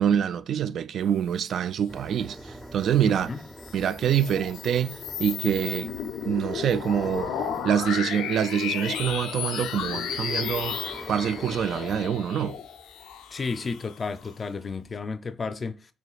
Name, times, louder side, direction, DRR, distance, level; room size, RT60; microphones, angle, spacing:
voice 1, 0.0-3.3 3.7-5.9 6.2-7.3 7.6-10.8 11.1-12.6, right 9 dB, 65° right, 0.3 m, -25 dB
sound 1, 1.9-13.3 13.6-13.7 14.2-15.0, right 1 dB, 10° right, 0.6 m, -45 dB
voice 2, 3.0-3.4 13.3-15.9, left 4 dB, 35° left, 0.4 m, -32 dB
sound 2, 3.4-14.3, left 8 dB, 90° left, 0.5 m, -34 dB
6.1 x 3.1 x 2.4 m
cardioid pair, 90°, 0 cm